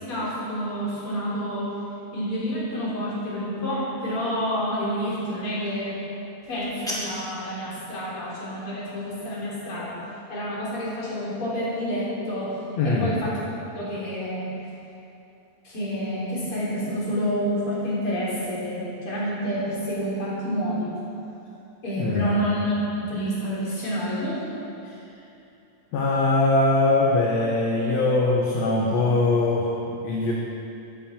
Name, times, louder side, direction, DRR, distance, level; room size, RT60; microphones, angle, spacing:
voice 1, 0.0-1.7 2.1-6.0 6.5-10.0 10.3-12.5 12.8-13.3 13.8-14.5 15.6-20.9 21.8-24.4, equal, 40° left, -7 dB, 4.5 m, -28 dB
sound 1, 6.4-7.4, equal, ahead, 1.6 m, -34 dB
voice 2, 12.8-13.1 22.0-22.3 24.8-25.0 25.9-29.7 30.0-30.3, left 2 dB, 60° left, -3 dB, 2.2 m, -22 dB
15.0 x 14.0 x 4.5 m, 2.8 s
omnidirectional pair, 4.0 m